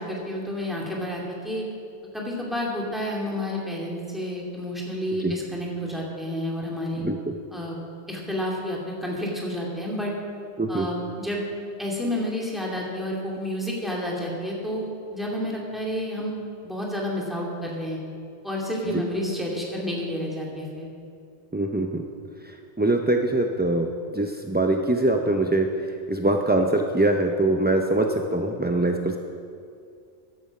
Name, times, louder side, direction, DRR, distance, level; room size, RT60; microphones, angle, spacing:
voice 1, 0.0-1.6 2.1-7.0 7.5-7.8 8.1-10.1 10.7-11.4 11.8-16.4 16.6-18.0 18.4-20.9, left 1 dB, ahead, -3 dB, 2.4 m, -30 dB
voice 2, 7.0-7.3 10.6-10.9 18.9-19.0 21.5-22.0 22.4-25.7 26.1-29.2, right 2 dB, 15° right, 3 dB, 0.3 m, -23 dB
14.0 x 11.0 x 5.4 m, 2.4 s
omnidirectional pair, 1.2 m